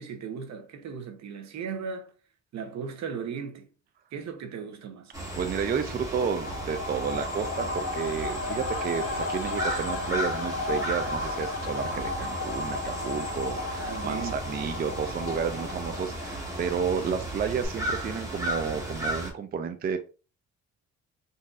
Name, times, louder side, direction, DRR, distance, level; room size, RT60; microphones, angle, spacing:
voice 1, 0.0-2.1 2.5-3.7 4.1-5.1 13.8-14.4, right 6 dB, 65° right, 0.8 m, -37 dB
sound 1, 5.1-19.3, right 1 dB, 10° right, 1.3 m, -35 dB
voice 2, 5.4-20.0, right 7 dB, 35° right, 0.4 m, -31 dB
sound 2, 5.9-17.3 17.6-17.7, left 3 dB, 45° left, 1.1 m, -34 dB
3.8 x 2.6 x 2.4 m
cardioid pair, 90°, 30 cm